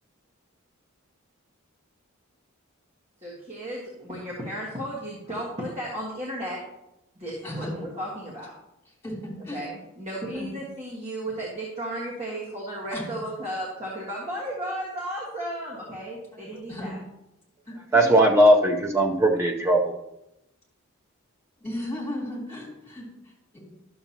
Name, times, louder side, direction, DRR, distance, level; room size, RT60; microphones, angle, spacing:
voice 1, 3.2-6.6 7.1-8.5 9.5-17.0 18.0-18.1, right 1 dB, 30° right, -5 dB, 1.7 m, -34 dB
voice 2, 9.0-9.6 10.3-10.5 12.9-13.0 16.3-16.9 17.7-18.1 21.6-23.6, left 1 dB, 10° left, -7 dB, 3.3 m, -35 dB
voice 3, 17.9-19.9, right 1 dB, 10° right, 0 dB, 0.7 m, -19 dB
11.5 x 6.9 x 2.9 m, 0.88 s
head